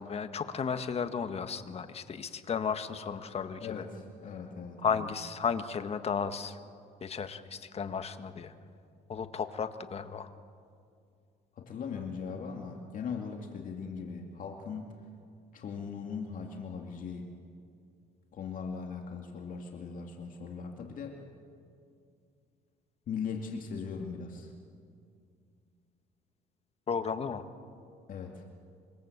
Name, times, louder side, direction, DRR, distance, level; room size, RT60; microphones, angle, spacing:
voice 1, 0.0-3.8 4.8-6.6 7.0-8.5 9.1-10.3 26.9-27.5, left 6 dB, 35° left, 9 dB, 1.6 m, -34 dB
voice 2, 3.6-5.0 11.6-14.9 15.5-17.3 18.3-21.2 23.1-24.5 28.1-28.5, left 5 dB, 55° left, 2 dB, 2.4 m, -39 dB
26.0 x 24.5 x 8.2 m, 2.4 s
cardioid pair, 110°, 17 cm